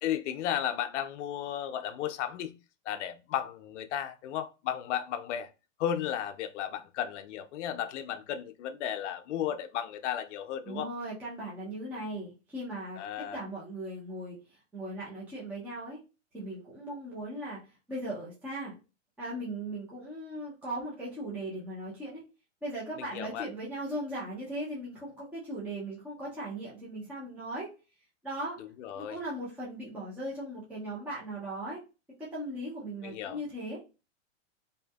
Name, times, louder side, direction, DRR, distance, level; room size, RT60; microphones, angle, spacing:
voice 1, 0.0-2.5 2.9-5.5 5.8-10.9 13.0-13.4 22.9-23.5 28.6-29.2 33.0-33.4, left 10 dB, 70° left, 0.5 m, -34 dB
voice 2, 10.6-13.0 13.3-14.4 14.7-16.0 16.3-17.6 17.9-18.7 19.2-22.2 22.6-27.7 28.2-28.6 29.0-31.8 32.3-33.8, right 1 dB, 5° right, 0.5 m, -38 dB
2.7 x 2.5 x 2.2 m
supercardioid pair, 145°, 37 cm